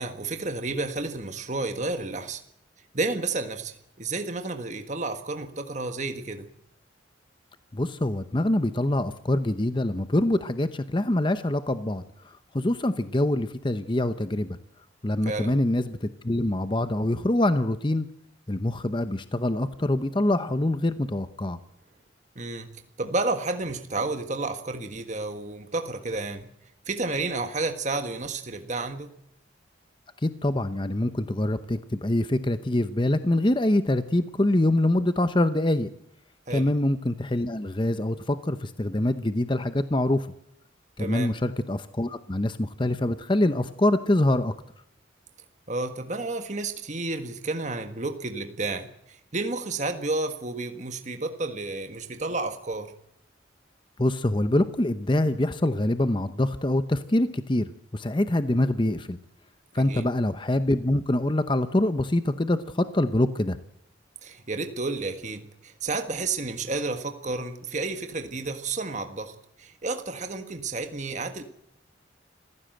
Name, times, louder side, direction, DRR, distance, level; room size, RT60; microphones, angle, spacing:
voice 1, 0.0-2.4 2.9-6.5 15.2-15.5 22.3-22.7 23.0-26.5 26.9-29.1 36.5-36.7 41.0-41.4 45.7-52.9 59.8-60.1 64.2-71.4, right 3 dB, 40° right, 7 dB, 1.5 m, -31 dB
voice 2, 7.7-12.0 12.5-14.6 15.0-18.1 18.5-21.6 30.2-35.9 36.5-40.3 41.0-44.5 54.0-59.2 59.7-63.6, left 1 dB, 25° left, 11 dB, 0.8 m, -25 dB
27.0 x 15.5 x 7.8 m, 0.73 s
head